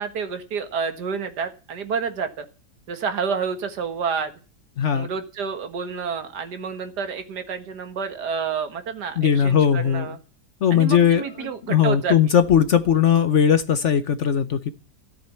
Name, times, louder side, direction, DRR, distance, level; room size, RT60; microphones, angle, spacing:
voice 1, 0.0-2.5 2.9-4.3 4.9-10.2 10.7-12.2, right 6 dB, 70° right, 2.1 m, -29 dB
voice 2, 4.8-5.1 9.2-10.1 10.6-14.7, left 8 dB, 55° left, 1.0 m, -19 dB
14.0 x 7.9 x 8.2 m
omnidirectional pair, 1.8 m